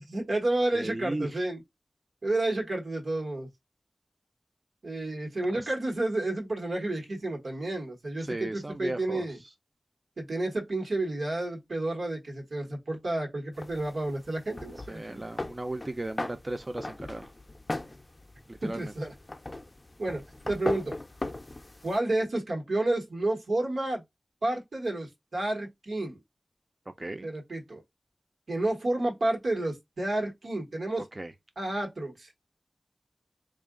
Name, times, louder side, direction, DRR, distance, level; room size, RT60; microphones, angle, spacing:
voice 1, 0.0-1.6 2.2-3.5 4.8-9.4 10.2-15.3 18.6-19.1 20.0-21.0 21.8-24.0 24.4-26.2 27.2-27.8 28.5-31.0 31.6-32.3, right 2 dB, 85° right, 1.2 m, -30 dB
voice 2, 0.7-1.5 5.5-5.7 8.2-9.3 14.9-17.3 18.5-18.9 27.0-27.3 31.2-31.3, right 2 dB, 35° right, 0.4 m, -36 dB
sound 1, 13.5-22.0, left 2 dB, 30° left, 0.5 m, -39 dB
3.7 x 2.4 x 3.6 m
wide cardioid pair, 60°, 0 cm